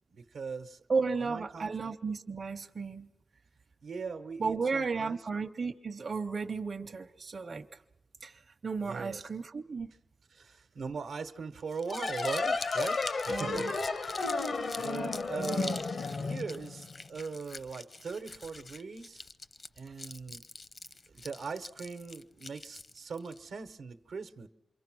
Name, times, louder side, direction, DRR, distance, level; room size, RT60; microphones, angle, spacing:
voice 1, 0.1-0.8 1.2-1.8 3.8-5.2 8.8-9.2 10.3-14.5 14.8-19.2 19.8-20.4 21.1-24.5, right 5 dB, 85° right, 8 dB, 1.0 m, -40 dB
voice 2, 0.9-3.1 4.4-7.7 8.2-9.9 13.3-13.7, right 4 dB, 60° right, 5 dB, 0.8 m, -34 dB
Crumpling crinkling, 11.6-23.4, left 3 dB, 50° left, 0.7 m, -45 dB
sound 1, 11.9-17.1, left 4 dB, 75° left, 1.1 m, -33 dB
27.5 x 23.0 x 6.2 m, 0.93 s
cardioid pair, 60°, 0 cm